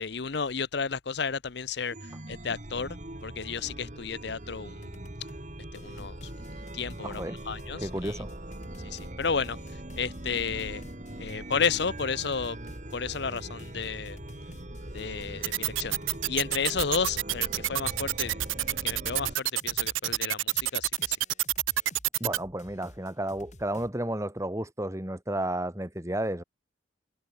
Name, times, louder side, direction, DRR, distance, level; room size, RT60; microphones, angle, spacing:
voice 1, 0.0-1.9 2.3-3.0 3.2-4.9 5.7-6.3 6.7-8.1 8.8-9.6 10.0-10.8 11.2-12.6 12.9-14.2 14.9-16.0 16.3-18.4 18.7-21.2, left 5 dB, 60° left, 0.7 m, -32 dB
Chime, 1.9-19.3, right 1 dB, 40° right, 2.8 m, -41 dB
sound 1, 4.8-5.5 5.7-23.9, left 1 dB, 35° left, 7.2 m, -52 dB
voice 2, 7.0-7.4 7.8-8.3 22.2-26.4, right 1 dB, 15° right, 1.8 m, -32 dB
sound 2, 15.4-22.4, right 15 dB, 90° right, 0.7 m, -27 dB
head